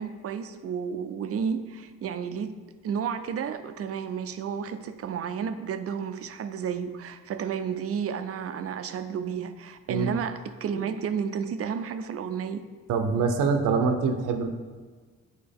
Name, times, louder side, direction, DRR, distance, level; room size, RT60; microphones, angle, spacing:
voice 1, 0.0-2.5 2.8-12.6, right 7 dB, 50° right, 10 dB, 0.5 m, -32 dB
voice 2, 12.9-14.5, right 5 dB, 85° right, 6 dB, 0.7 m, -24 dB
7.7 x 4.6 x 3.5 m, 1.4 s
cardioid pair, 90°, 30 cm